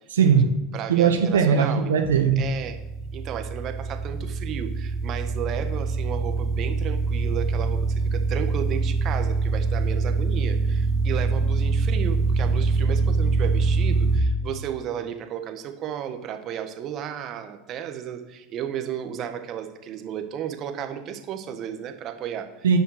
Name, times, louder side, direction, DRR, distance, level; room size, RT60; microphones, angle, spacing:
voice 1, 0.1-0.5 0.9-2.5 22.6-22.8, right 7 dB, 85° right, 5 dB, 1.0 m, -19 dB
voice 2, 0.7-1.9 2.4-2.8 3.1-22.7, right 9 dB, 45° right, 6 dB, 1.4 m, -34 dB
sound 1, 2.0-14.2, right 4 dB, 35° left, 2.6 m, -24 dB
10.5 x 5.5 x 6.6 m, 0.93 s
hypercardioid pair, 85°, 0 cm